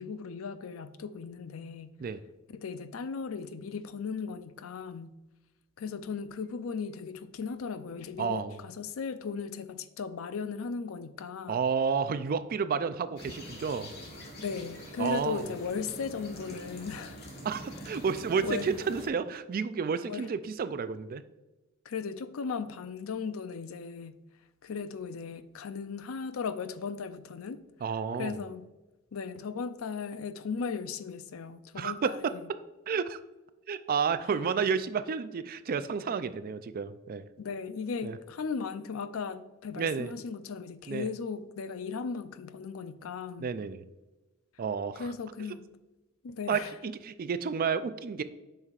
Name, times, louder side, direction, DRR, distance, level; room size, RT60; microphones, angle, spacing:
voice 1, 0.0-1.9 2.5-5.1 5.8-11.6 14.4-17.2 18.4-18.7 20.0-20.3 21.8-24.2 24.6-27.6 28.2-28.7 29.1-32.4 37.4-43.5 45.0-45.7 46.2-46.7, left 5 dB, 80° left, 0.5 m, -37 dB
voice 2, 8.2-8.6 11.5-13.9 15.0-15.5 17.4-21.2 27.8-28.4 31.8-32.3 32.9-33.2 33.7-37.3 38.0-38.2 39.8-40.1 40.9-41.1 43.4-43.8 44.6-45.1 46.5-48.2, right 6 dB, 45° right, 0.4 m, -31 dB
sound 1, 13.2-19.1, equal, 50° left, 1.7 m, -45 dB
7.8 x 5.7 x 2.4 m
head